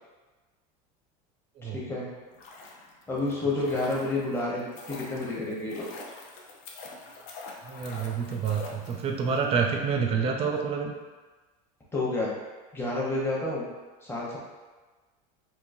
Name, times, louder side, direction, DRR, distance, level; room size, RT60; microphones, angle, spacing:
voice 1, 1.6-2.1 3.1-5.9 11.9-12.3 12.7-13.6 14.0-14.4, left 2 dB, 10° left, -6 dB, 0.9 m, -29 dB
sound 1, 2.2-9.4 9.6-9.7, left 3 dB, 60° left, 0.6 m, -45 dB
voice 2, 7.6-10.9, right 6 dB, 30° right, 2 dB, 0.4 m, -28 dB
3.8 x 2.6 x 2.6 m, 1.3 s
supercardioid pair, 140°, 20 cm